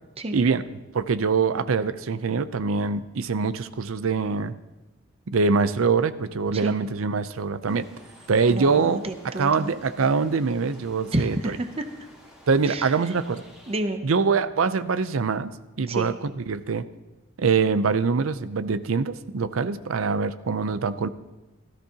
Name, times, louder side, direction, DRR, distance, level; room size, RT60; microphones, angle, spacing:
voice 1, 0.3-0.6 0.9-4.5 5.3-7.9 8.3-9.0 9.4-11.6 12.5-13.5 14.0-15.5 15.8-16.9 17.4-21.1, right 5 dB, 80° right, 13 dB, 0.6 m, -24 dB
sound 1, 7.7-13.8, equal, 5° right, 2.4 m, -51 dB
voice 2, 8.5-9.7 11.1-11.9 12.7-12.9 13.7-14.0 15.9-16.1, right 1 dB, 30° right, 8 dB, 0.7 m, -29 dB
16.5 x 13.5 x 2.9 m, 1.1 s
head